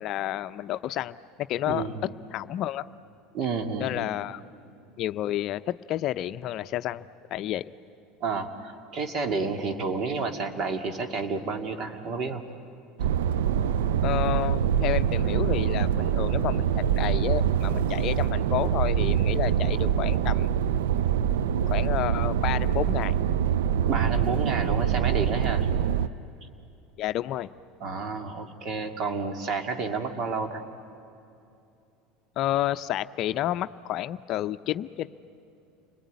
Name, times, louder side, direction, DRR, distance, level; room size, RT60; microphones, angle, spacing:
voice 1, 0.0-1.9 2.3-2.9 3.8-4.4 5.0-7.1 7.3-7.7 14.0-20.5 21.7-23.1 27.0-27.5 32.4-35.1, left 13 dB, 55° left, 12 dB, 0.6 m, -30 dB
voice 2, 1.7-2.0 3.3-4.1 8.2-12.4 23.9-25.7 27.8-30.6, right 4 dB, 50° right, 6 dB, 2.3 m, -30 dB
sound 1, 13.0-26.1, right 9 dB, 85° right, 0.5 m, -24 dB
29.5 x 20.5 x 9.5 m, 2.7 s
supercardioid pair, 95°, 0 cm